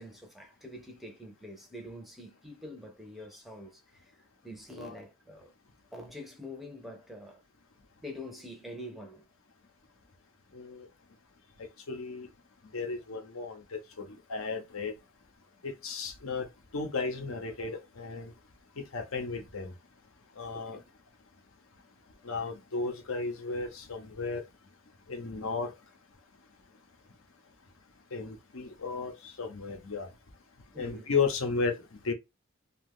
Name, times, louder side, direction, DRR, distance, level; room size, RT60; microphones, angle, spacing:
voice 1, 0.0-4.2 4.4-5.5 5.9-7.4 8.0-9.3 20.5-20.8 30.7-31.1, left 1 dB, ahead, 0.5 m, -45 dB
voice 2, 10.5-10.9 11.9-12.3 12.7-13.6 14.0-14.9 15.6-16.5 16.7-18.3 18.9-19.7 20.4-20.8 22.2-24.4 25.1-25.7 28.1-30.1 30.8-31.7 32.0-32.1, left 4 dB, 75° left, 0.7 m, -34 dB
2.6 x 2.3 x 3.4 m
head